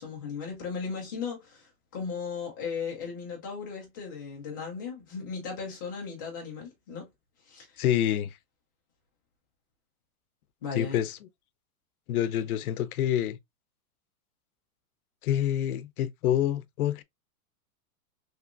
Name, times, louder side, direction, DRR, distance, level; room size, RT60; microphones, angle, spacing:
voice 1, 0.0-7.1 7.4-7.8 10.6-11.0, left 5 dB, 15° left, 0.4 m, -37 dB
voice 2, 7.8-8.3 10.7-11.2 12.1-13.4 15.2-17.0, left 11 dB, 75° left, 0.6 m, -27 dB
3.4 x 2.9 x 2.4 m
supercardioid pair, 170°, 44 cm